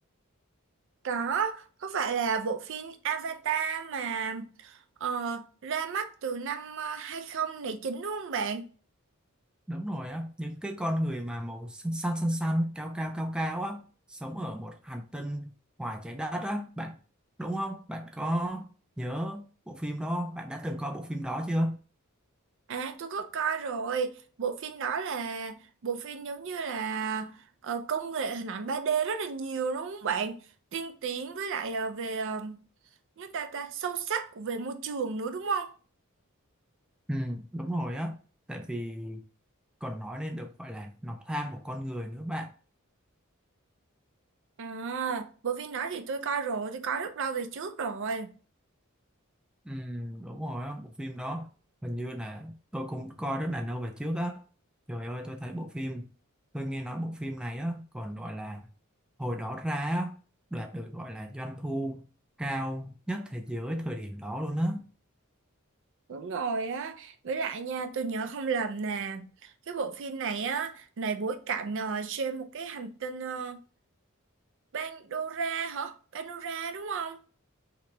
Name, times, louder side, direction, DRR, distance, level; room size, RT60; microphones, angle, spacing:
voice 1, 1.0-8.6 22.7-30.4 30.7-32.6 33.2-35.7 44.6-48.3 66.1-73.6 74.7-77.2, right 5 dB, 65° right, 0.5 m, -32 dB
voice 2, 9.7-13.8 14.1-15.5 15.8-17.0 17.4-18.7 19.0-21.8 37.1-38.2 38.5-39.2 39.8-42.5 49.6-51.5 51.8-54.4 54.9-56.1 56.5-58.7 59.2-60.2 60.5-62.1 62.4-64.8, equal, 5° right, 0.3 m, -33 dB
3.0 x 2.9 x 3.2 m
head